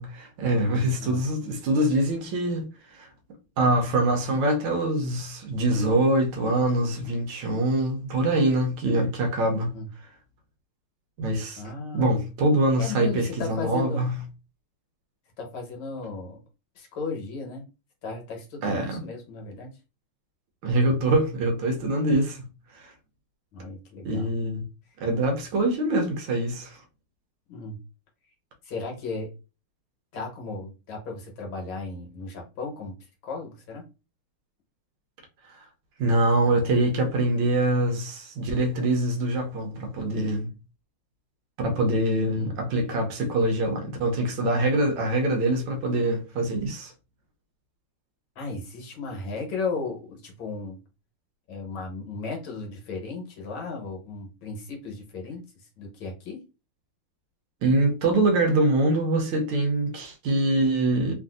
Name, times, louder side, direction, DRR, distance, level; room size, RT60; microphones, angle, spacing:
voice 1, 0.0-2.7 2.9-3.1 3.6-9.8 11.2-11.6 11.9-14.2 18.6-19.0 20.6-22.5 22.7-22.9 24.0-24.6 25.0-26.8 36.0-40.5 41.6-46.9 57.6-61.1, right 1 dB, 75° right, 1.5 m, -24 dB
voice 2, 11.5-12.1 12.8-14.1 15.4-16.4 16.7-17.6 18.0-19.7 23.5-24.3 27.5-27.8 28.6-29.3 30.1-32.9 33.2-33.8 42.3-42.6 48.4-50.8 51.5-56.4, left 4 dB, 70° left, 1.7 m, -35 dB
3.8 x 2.5 x 2.4 m
omnidirectional pair, 2.4 m